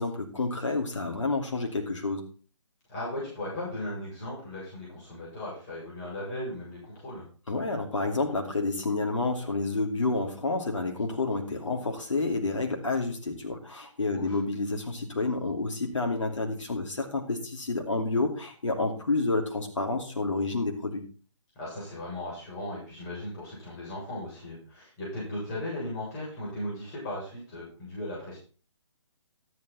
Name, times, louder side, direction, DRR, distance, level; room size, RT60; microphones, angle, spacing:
voice 1, 0.0-2.2 7.5-21.0, left 3 dB, 75° left, 2 dB, 2.8 m, -29 dB
voice 2, 2.9-7.2 14.1-14.4 21.6-28.4, left 1 dB, 35° left, -6 dB, 7.2 m, -37 dB
13.5 x 8.6 x 4.2 m, 0.39 s
figure-of-eight pair, 140°, 16 cm